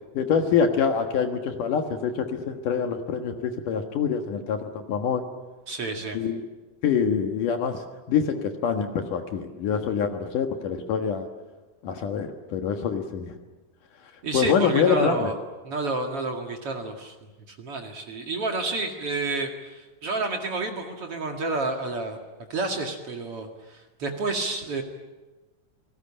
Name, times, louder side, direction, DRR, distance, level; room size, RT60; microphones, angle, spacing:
voice 1, 0.1-5.2 6.1-6.4 6.8-7.8 8.1-11.3 11.8-13.3 14.3-15.3, left 6 dB, 65° left, 5 dB, 2.1 m, -25 dB
voice 2, 5.7-6.2 14.2-15.3 15.6-17.1 17.5-22.2 22.5-24.8, right 3 dB, 55° right, 3 dB, 1.6 m, -30 dB
29.5 x 19.0 x 8.8 m, 1.2 s
omnidirectional pair, 5.8 m